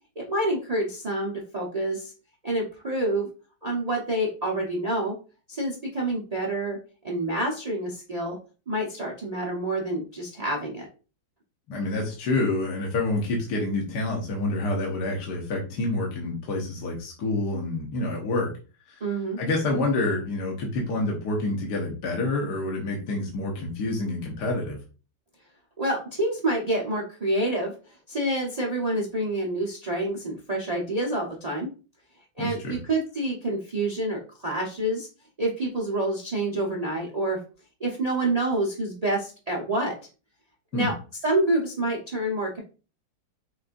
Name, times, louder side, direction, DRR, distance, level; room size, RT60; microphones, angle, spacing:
voice 1, 0.2-2.1 2.4-3.3 3.6-5.1 5.5-6.8 7.0-8.4 8.7-10.8 19.0-19.4 25.8-27.7 28.1-31.7 32.4-35.1 35.4-37.4 37.8-39.9 40.7-40.9 41.2-42.6, right 1 dB, 55° right, -1 dB, 0.4 m, -27 dB
voice 2, 11.7-18.5 18.9-19.0 19.4-24.8 32.4-32.8 40.7-40.9, left 2 dB, 65° left, -1 dB, 1.4 m, -28 dB
6.3 x 2.4 x 2.5 m, 0.35 s
omnidirectional pair, 2.1 m